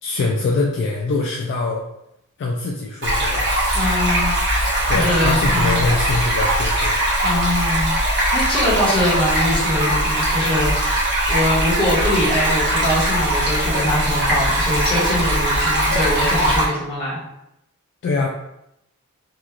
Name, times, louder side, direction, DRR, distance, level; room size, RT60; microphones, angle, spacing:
voice 1, 0.0-1.9 2.4-3.5 4.9-6.9 18.0-18.3, left 3 dB, 55° left, 0 dB, 0.3 m, -23 dB
Stream, 3.0-16.6, right 1 dB, 55° right, 0.9 m, -20 dB
voice 2, 3.7-4.4 4.9-5.8 7.2-8.0 8.3-17.2, left 1 dB, 25° left, -8 dB, 1.1 m, -22 dB
3.0 x 2.3 x 2.5 m, 0.83 s
head